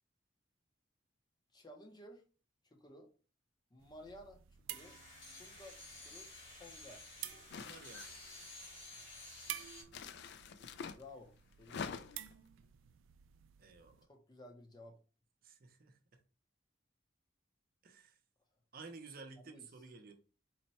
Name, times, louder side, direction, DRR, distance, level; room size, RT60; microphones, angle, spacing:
voice 1, 1.5-2.2 2.6-3.1 3.7-4.4 4.7-5.0 5.3-7.0 7.3-7.5 10.9-12.1 14.1-15.0 19.4-19.6, left 1 dB, 20° left, 0.6 m, -55 dB
sound 1, 3.8-14.1, right 13 dB, 90° right, 0.3 m, -52 dB
sound 2, 4.7-9.8, left 2 dB, 85° left, 2.0 m, -53 dB
sound 3, 7.5-8.4 9.9-11.0 11.6-12.3, left 6 dB, 60° left, 0.3 m, -46 dB
voice 2, 7.6-8.2 13.6-14.1 15.4-16.2 17.8-18.2 18.7-20.1, right 4 dB, 50° right, 0.6 m, -53 dB
4.1 x 2.2 x 4.1 m
head